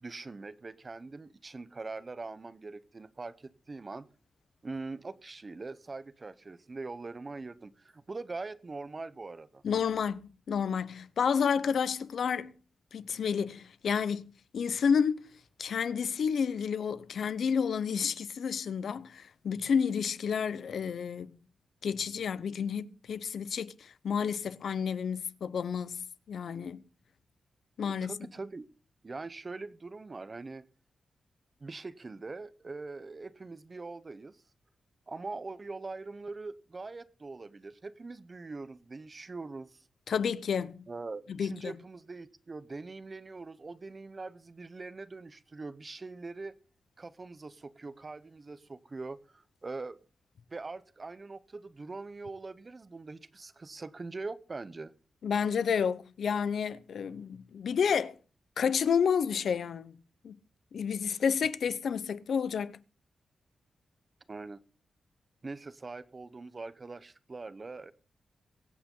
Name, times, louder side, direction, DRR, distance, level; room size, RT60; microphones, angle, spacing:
voice 1, 0.0-4.1 4.6-9.6 28.0-28.7 29.0-30.6 31.6-34.4 35.1-39.8 40.9-46.6 47.0-50.0 50.5-54.9 64.3-64.6 65.4-67.9, right 3 dB, 25° right, 0.8 m, -42 dB
voice 2, 9.6-10.2 10.5-12.5 12.9-14.2 14.5-15.3 15.6-21.3 21.8-26.8 27.8-28.2 40.1-40.8 41.4-41.7 55.2-58.1 58.6-60.0 60.2-60.4 60.7-62.8, left 7 dB, 65° left, 0.7 m, -30 dB
23.0 x 8.7 x 3.8 m
wide cardioid pair, 160°, 0 cm